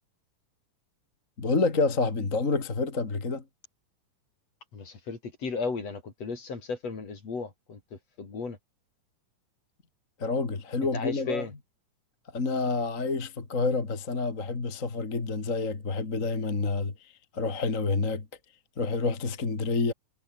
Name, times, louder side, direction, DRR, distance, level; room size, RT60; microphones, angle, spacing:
voice 1, 1.4-3.4 10.2-11.4 12.3-18.3 18.8-19.9, left 3 dB, 25° left, 2.6 m, -28 dB
voice 2, 4.7-8.6 10.8-11.5, left 4 dB, 45° left, 5.2 m, -35 dB
omnidirectional pair, 4.1 m